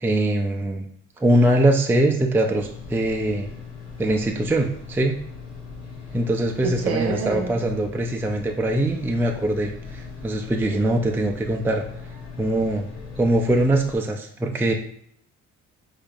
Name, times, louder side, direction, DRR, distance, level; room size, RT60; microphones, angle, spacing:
voice 1, 0.0-0.9 1.2-3.5 4.0-5.2 6.1-11.8 12.4-12.9 13.2-14.7, right 1 dB, 5° right, 2 dB, 0.4 m, -22 dB
sound 1, 2.6-14.0, left 5 dB, 60° left, 1.4 m, -39 dB
voice 2, 6.6-7.6, right 5 dB, 55° right, 2 dB, 0.7 m, -27 dB
5.2 x 3.7 x 2.4 m, 0.64 s
cardioid pair, 90°, 30 cm